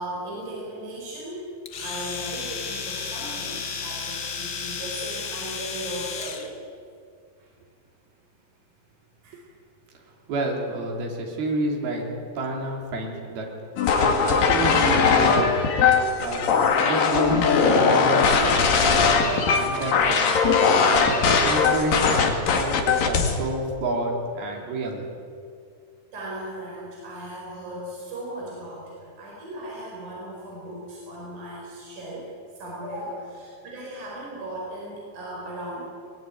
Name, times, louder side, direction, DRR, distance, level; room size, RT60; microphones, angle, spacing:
voice 1, 0.0-1.5 1.8-6.6 7.4-7.5 9.2-9.4 26.1-35.9, right 1 dB, 55° right, -5 dB, 6.4 m, -37 dB
Domestic sounds home sounds, 1.7-6.5, left 6 dB, 90° left, 0.9 m, -33 dB
voice 2, 10.3-13.5 13.9-15.6 16.2-20.2 20.8-25.1, right 2 dB, 85° right, 0 dB, 5.1 m, -30 dB
sound 1, 13.8-23.4, left 5 dB, 65° left, 3.8 m, -20 dB
21.0 x 21.0 x 9.3 m, 2.3 s
omnidirectional pair, 4.3 m